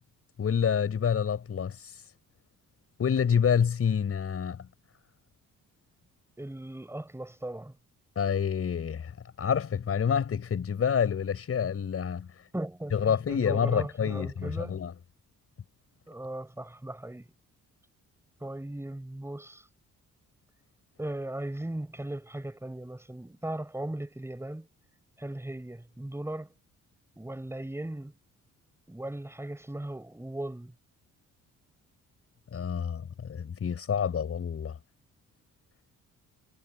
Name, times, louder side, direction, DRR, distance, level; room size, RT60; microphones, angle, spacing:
voice 1, 0.4-1.8 3.0-4.7 8.2-9.1 9.4-12.3 12.9-14.9 32.5-34.8, left 7 dB, 50° left, 6.1 m, -28 dB
voice 2, 6.4-7.7 12.5-14.7 16.1-17.3 18.4-19.7 21.0-24.7 25.2-26.5 27.2-28.2 28.9-30.7, right 1 dB, 10° right, 6.2 m, -37 dB
cardioid pair, 90°, 30 cm